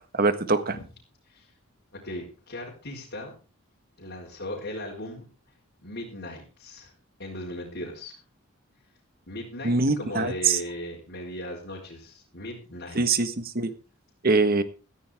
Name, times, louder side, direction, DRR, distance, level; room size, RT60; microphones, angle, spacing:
voice 1, 0.1-0.8 9.6-10.6 12.9-13.7 14.2-14.6, right 3 dB, 45° right, 11 dB, 1.5 m, -23 dB
voice 2, 1.9-3.3 4.0-5.2 5.8-6.9 7.2-8.2 9.3-13.0, left 1 dB, 55° left, -4 dB, 4.4 m, -37 dB
16.0 x 14.5 x 3.6 m, 0.33 s
head